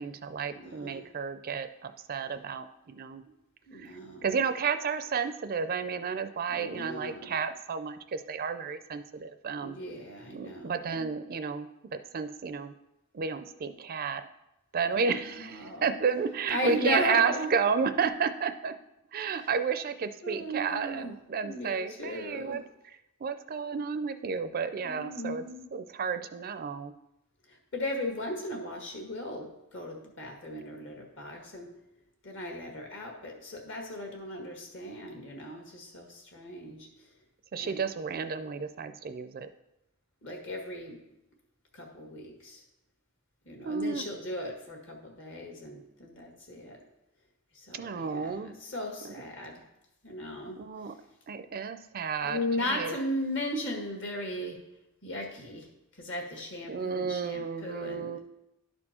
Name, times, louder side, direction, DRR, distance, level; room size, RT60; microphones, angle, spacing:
voice 1, 0.0-3.2 3.7-3.9 4.2-9.8 10.3-12.7 13.1-14.2 14.7-18.7 19.1-22.6 23.2-25.4 25.7-26.9 37.5-39.5 43.6-44.0 47.7-48.5 49.0-49.1 50.6-50.9 51.3-52.4 52.7-52.9 56.7-58.2, right 5 dB, 45° right, 10 dB, 0.4 m, -32 dB
voice 2, 0.5-1.1 3.7-4.4 6.5-7.4 9.6-11.1 14.9-15.9 16.5-17.5 19.4-19.5 20.2-21.1 21.4-22.6 24.8-25.7 27.5-31.7 32.2-36.9 37.6-37.8 40.2-41.0 41.7-42.6 43.5-46.8 47.5-49.6 50.0-50.6 50.8-50.9 52.2-54.6 55.0-55.7 55.9-58.1, left 1 dB, 60° left, 1 dB, 1.7 m, -37 dB
11.5 x 4.4 x 4.3 m, 0.89 s
head